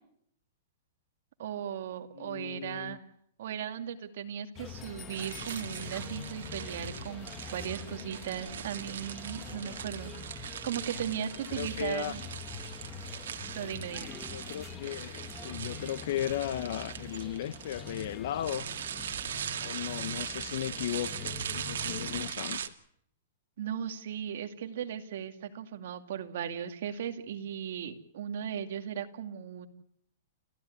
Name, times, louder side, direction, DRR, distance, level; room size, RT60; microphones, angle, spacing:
voice 1, 1.4-3.0 3.4-12.2 13.5-14.1 23.6-29.7, right 9 dB, 55° right, 2.4 m, -37 dB
voice 2, 2.1-3.0 11.5-12.2 14.3-18.7 19.6-22.7, left 11 dB, 50° left, 0.8 m, -36 dB
sound 1, 4.5-22.3, left 5 dB, 15° left, 1.2 m, -44 dB
sound 2, 5.1-22.7, right 9 dB, 80° right, 1.9 m, -41 dB
29.5 x 13.5 x 9.5 m
hypercardioid pair, 175°, 0 cm